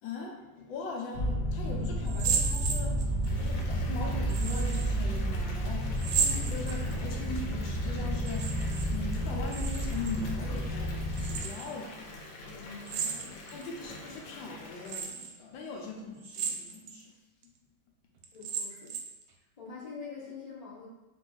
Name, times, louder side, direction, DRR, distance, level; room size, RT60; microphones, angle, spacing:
voice 1, 0.0-12.0 13.5-17.2, left 3 dB, 90° left, 0 dB, 1.5 m, -40 dB
sound 1, 1.1-11.4, equal, 20° left, 0.9 m, -31 dB
sound 2, 2.1-3.3 4.3-4.9 6.0-7.1 8.2-8.9 9.2-10.2 11.1-11.7 12.9-13.6 14.2-14.3 14.9-15.3 16.2-17.0 17.4-17.5 18.2-19.2, right 6 dB, 75° right, 1.1 m, -33 dB
Water tap faucet / Bathtub (filling or washing) / Fill (with liquid), 3.2-15.0, left 2 dB, 70° left, 1.3 m, -46 dB
voice 2, 12.6-13.7 18.3-18.9 19.6-20.9, left 4 dB, 40° left, -5 dB, 0.5 m, -45 dB
3.4 x 3.1 x 3.9 m, 1.1 s
omnidirectional pair, 2.0 m